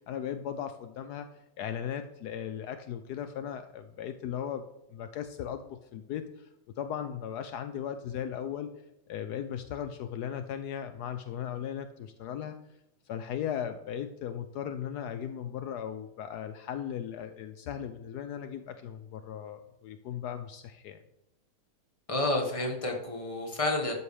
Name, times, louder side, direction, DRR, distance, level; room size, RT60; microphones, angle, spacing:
voice 1, 0.0-6.5 6.8-8.7 9.1-12.6 13.1-21.0, left 9 dB, 85° left, 9 dB, 0.8 m, -37 dB
voice 2, 22.1-23.9, left 2 dB, 15° left, 1 dB, 1.4 m, -30 dB
12.0 x 7.0 x 3.3 m, 0.89 s
omnidirectional pair, 2.3 m